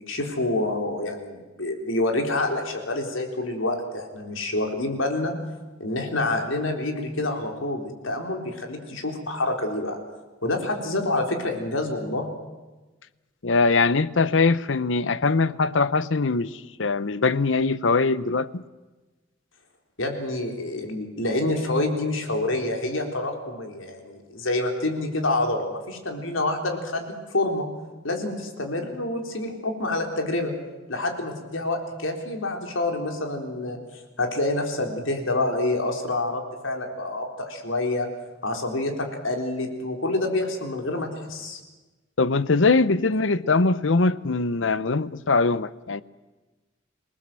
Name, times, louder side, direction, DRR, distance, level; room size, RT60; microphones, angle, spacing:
voice 1, 0.0-5.3 5.8-10.0 10.4-12.3 20.0-27.7 28.0-30.5 30.9-33.8 34.2-38.1 38.4-41.6, left 2 dB, 90° left, 4.0 m, -27 dB
voice 2, 13.4-16.5 16.8-18.6 42.2-46.0, left 3 dB, 70° left, 0.8 m, -22 dB
27.0 x 19.5 x 7.6 m
head